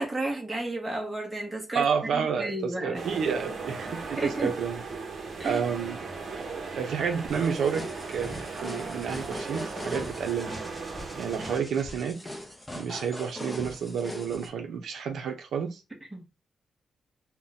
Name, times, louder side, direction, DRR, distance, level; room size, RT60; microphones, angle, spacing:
voice 1, 0.0-1.9 2.1-3.0 4.2-4.6 5.4-5.6 16.1-16.2, right 1 dB, 15° right, 0.8 m, -32 dB
voice 2, 1.7-4.8 5.4-6.0 6.7-10.6 11.2-12.3 12.7-15.8, right 7 dB, 80° right, 0.5 m, -30 dB
sound 1, 2.9-11.6, right 4 dB, 50° right, 0.8 m, -37 dB
sound 2, 7.3-14.5, left 1 dB, 10° left, 0.5 m, -40 dB
2.5 x 2.1 x 3.8 m
wide cardioid pair, 150°, 0 cm